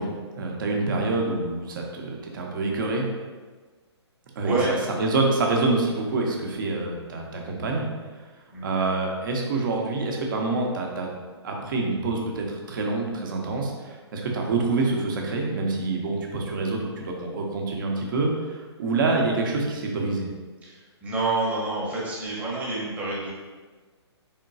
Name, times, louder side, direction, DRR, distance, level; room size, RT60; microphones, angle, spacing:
voice 1, 0.0-3.1 4.4-7.9 8.6-11.1 11.4-20.3, right 3 dB, 45° right, 0 dB, 0.8 m, -26 dB
voice 2, 4.4-4.7 8.5-8.7 20.6-23.3, right 2 dB, 10° right, -6 dB, 0.9 m, -28 dB
4.5 x 3.6 x 2.6 m, 1.4 s
figure-of-eight pair, 125°, 15 cm